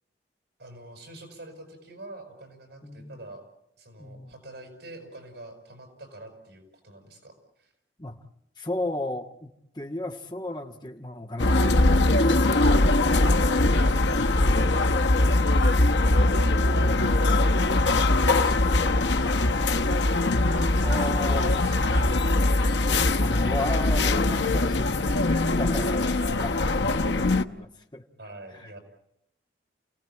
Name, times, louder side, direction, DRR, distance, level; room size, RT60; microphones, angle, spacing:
voice 1, 0.6-3.4 3.8-7.7 13.1-17.9 18.3-20.2 20.7-22.2 22.5-22.7 25.7-26.0 28.2-28.8, right 2 dB, 75° right, 6 dB, 7.0 m, -45 dB
voice 2, 2.8-3.2 4.0-4.4 8.0-8.2 8.6-13.0 20.8-21.5 22.8-28.1 28.5-28.8, left 1 dB, 25° left, 3 dB, 1.6 m, -35 dB
sound 1, 11.4-27.4, left 2 dB, 90° left, 0.9 m, -22 dB
29.0 x 17.5 x 8.7 m, 0.77 s
head